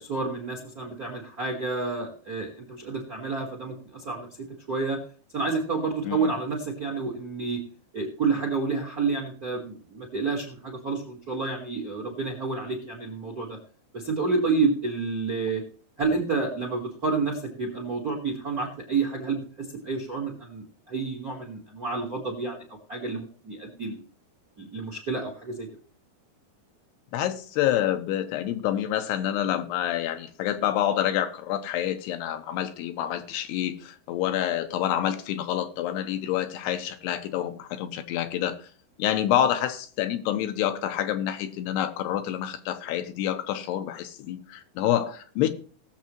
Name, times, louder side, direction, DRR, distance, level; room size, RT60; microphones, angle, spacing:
voice 1, 0.0-4.3 4.7-5.0 5.3-7.6 7.9-13.6 13.9-15.6 16.0-24.0 24.6-25.7, right 4 dB, 40° right, 1.3 m, -29 dB
voice 2, 27.1-38.7 39.0-45.5, left 11 dB, 85° left, 3.0 m, -27 dB
19.5 x 7.3 x 3.1 m
omnidirectional pair, 4.7 m